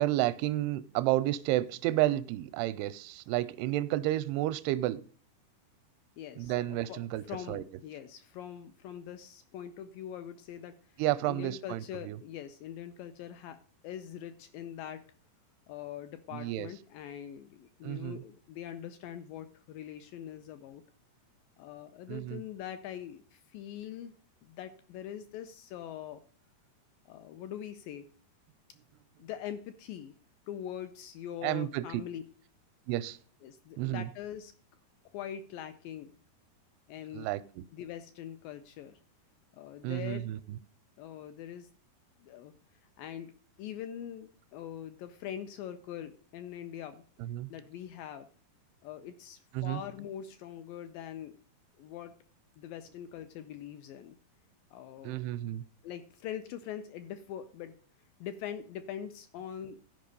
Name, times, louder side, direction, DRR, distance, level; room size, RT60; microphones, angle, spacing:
voice 1, 0.0-5.0 6.4-7.6 11.0-12.2 16.3-16.7 17.8-18.2 22.1-22.4 31.4-31.9 32.9-33.2 33.8-34.1 37.1-37.6 39.8-40.6 47.2-47.5 49.5-49.8 55.0-55.6, right 15 dB, 85° right, 14 dB, 2.6 m, -31 dB
voice 2, 6.2-7.0 7.3-10.8 11.3-15.0 15.7-20.8 21.6-24.1 24.4-26.2 27.1-28.1 29.2-30.1 30.5-32.2 33.4-34.5 35.1-36.1 36.9-37.3 37.7-39.0 39.5-40.3 41.0-41.7 42.2-42.5 43.0-43.3 43.6-47.0 47.5-48.3 48.8-51.4 51.8-52.1 52.6-54.2 54.7-55.2 55.8-57.8 58.2-59.8, left 10 dB, 80° left, 10 dB, 2.1 m, -43 dB
13.0 x 5.4 x 5.3 m, 0.41 s
omnidirectional pair, 4.7 m